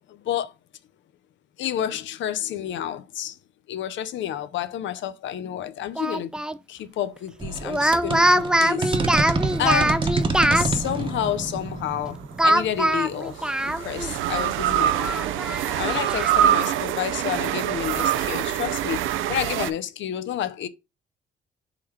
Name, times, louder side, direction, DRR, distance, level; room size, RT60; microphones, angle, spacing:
voice 1, 0.1-0.5 1.6-3.4 3.7-6.3 6.7-9.3 9.6-10.0 10.5-20.7, left 10 dB, 70° left, 0.5 m, -30 dB
Speech, 6.0-6.6 7.6-10.7 12.4-14.1 14.4-14.5 15.0-16.4, right 1 dB, 5° right, 0.3 m, -22 dB
sound 1, 7.4-13.9, right 3 dB, 25° right, 0.9 m, -28 dB
sound 2, 8.8-10.3 12.2-19.7, right 11 dB, 85° right, 0.4 m, -26 dB
3.8 x 3.0 x 4.7 m
cardioid pair, 90°, 20 cm